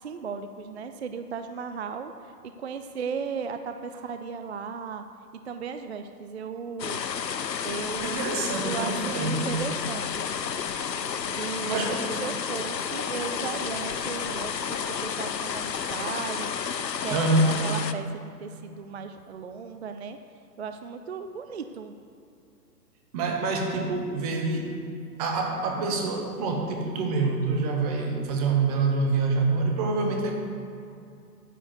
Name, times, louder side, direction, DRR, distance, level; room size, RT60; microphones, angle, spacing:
voice 1, 0.0-2.1 2.6-5.1 5.5-7.0 7.6-10.3 11.3-11.7 12.2-16.5 17.0-20.2 20.6-21.9, right 6 dB, 45° right, 8 dB, 0.4 m, -36 dB
sound 1, 6.8-17.9, left 7 dB, 80° left, 0.7 m, -31 dB
voice 2, 8.0-9.5 11.6-12.1 17.1-17.5 23.1-24.7 25.2-30.4, right 3 dB, 25° right, 2 dB, 1.1 m, -26 dB
9.7 x 4.8 x 7.8 m, 2.6 s
figure-of-eight pair, 125°, 49 cm